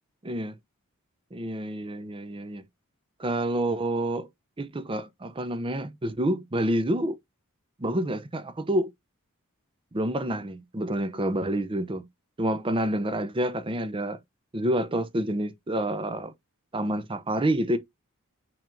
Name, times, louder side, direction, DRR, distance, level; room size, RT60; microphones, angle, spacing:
voice 1, 0.2-0.6 1.3-2.6 3.2-4.3 4.6-7.2 7.8-8.9 9.9-12.0 12.4-14.2 14.5-16.3 16.7-17.8, right 1 dB, 25° right, 0.6 m, -28 dB
6.0 x 3.5 x 2.6 m
head